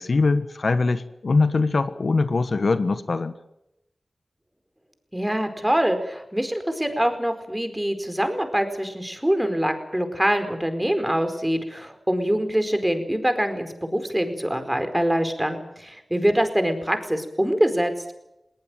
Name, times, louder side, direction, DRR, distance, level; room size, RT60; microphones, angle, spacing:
voice 1, 0.0-3.3, left 3 dB, 70° left, 11 dB, 1.3 m, -22 dB
voice 2, 5.1-17.9, equal, 10° right, 8 dB, 4.6 m, -24 dB
20.0 x 19.0 x 9.1 m, 0.85 s
cardioid pair, 50°, 0 cm